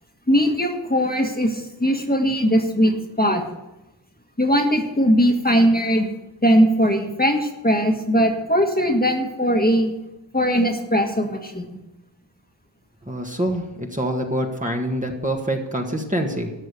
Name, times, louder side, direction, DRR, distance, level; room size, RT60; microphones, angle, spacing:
voice 1, 0.3-3.4 4.4-6.1 6.4-9.9 10.3-11.8, equal, 20° left, 3 dB, 1.7 m, -20 dB
voice 2, 13.0-16.5, right 1 dB, 15° right, 1 dB, 1.6 m, -25 dB
13.5 x 6.1 x 8.4 m, 0.94 s
wide cardioid pair, 70°, 46 cm